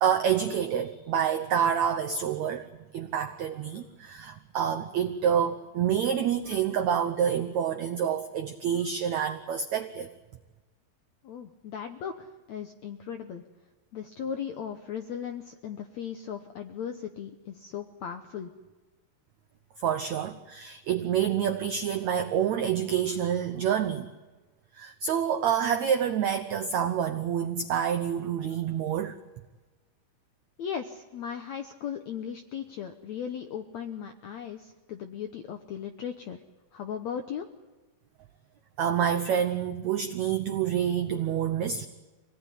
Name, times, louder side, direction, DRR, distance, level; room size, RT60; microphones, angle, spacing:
voice 1, 0.0-2.7 2.9-10.1 19.8-24.1 24.7-29.2 38.8-41.9, right 8 dB, 80° right, 9 dB, 1.6 m, -27 dB
voice 2, 11.2-13.4 13.9-18.5 30.6-36.4 36.7-37.5, left 8 dB, 75° left, 6 dB, 1.6 m, -37 dB
25.5 x 18.5 x 10.0 m, 1.2 s
omnidirectional pair, 4.5 m